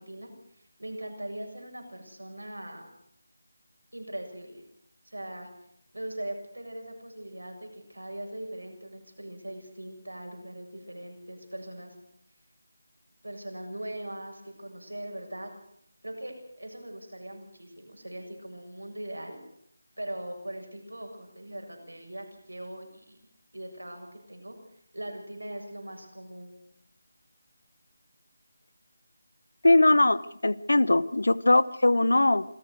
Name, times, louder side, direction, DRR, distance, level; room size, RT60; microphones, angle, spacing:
voice 1, 0.0-2.9 3.9-4.6 5.0-5.5 5.9-12.0 13.2-15.5 16.0-19.4 20.0-23.2 23.5-24.6 24.9-26.6, right 1 dB, 85° right, 3 dB, 7.3 m, -40 dB
voice 2, 29.6-32.4, left 2 dB, 70° left, 18 dB, 1.1 m, -21 dB
27.0 x 15.0 x 6.6 m, 0.70 s
figure-of-eight pair, 160°, 0 cm